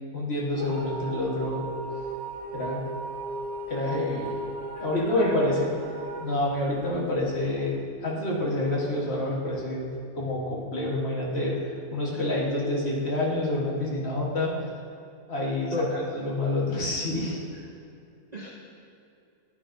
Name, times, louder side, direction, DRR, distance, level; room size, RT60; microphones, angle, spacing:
voice 1, 0.1-1.6 2.5-2.8 3.7-4.3 4.8-5.7 6.2-9.9 10.2-11.6 11.9-14.5 15.3-15.8 16.1-17.4, left 1 dB, 45° left, -4 dB, 1.6 m, -28 dB
sound 1, 0.5-7.5, right 2 dB, 50° right, 1.1 m, -36 dB
voice 2, 4.7-5.5 12.1-12.2 15.7-16.0 18.3-18.5, left 1 dB, 35° right, -5 dB, 0.7 m, -31 dB
10.5 x 9.0 x 2.6 m, 2.6 s
omnidirectional pair, 1.6 m